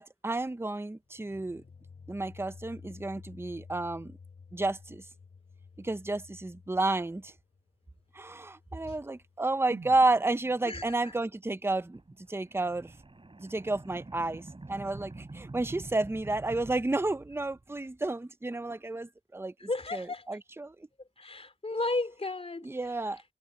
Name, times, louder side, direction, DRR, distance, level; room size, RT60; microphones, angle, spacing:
voice 1, 0.0-1.6 2.1-4.2 4.5-5.0 5.8-7.3 8.1-12.0 12.3-12.9 13.4-19.5 19.9-20.8 22.6-23.2, right 2 dB, 15° right, 0.7 m, -31 dB
sound 1, 1.1-10.0, left 5 dB, 80° left, 6.4 m, -53 dB
sound 2, 9.7-13.7 14.0-14.1, right 4 dB, 60° right, 5.8 m, -52 dB
sound 3, 11.9-17.8, right 2 dB, 35° right, 4.6 m, -47 dB
voice 2, 19.7-20.3 21.2-22.7, left 2 dB, 40° left, 3.3 m, -33 dB
wide cardioid pair, 75°, 15 cm